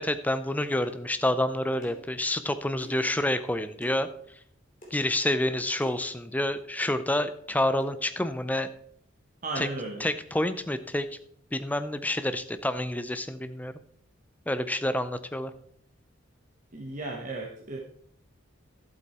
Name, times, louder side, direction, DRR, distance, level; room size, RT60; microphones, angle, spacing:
voice 1, 0.0-4.1 4.9-8.7 9.6-9.7 10.0-11.1 11.5-13.7 14.5-15.5, left 1 dB, 10° left, 11 dB, 0.5 m, -28 dB
sound 1, 0.8-1.0 1.8-2.1 2.8-3.1 3.8-4.0 4.8-5.0 5.8-6.1 6.8-7.0 7.8-7.9, left 1 dB, 40° left, 3.2 m, -47 dB
voice 2, 9.4-10.0 16.7-17.8, right 2 dB, 40° right, -1 dB, 1.2 m, -35 dB
11.5 x 8.1 x 4.3 m, 0.67 s
head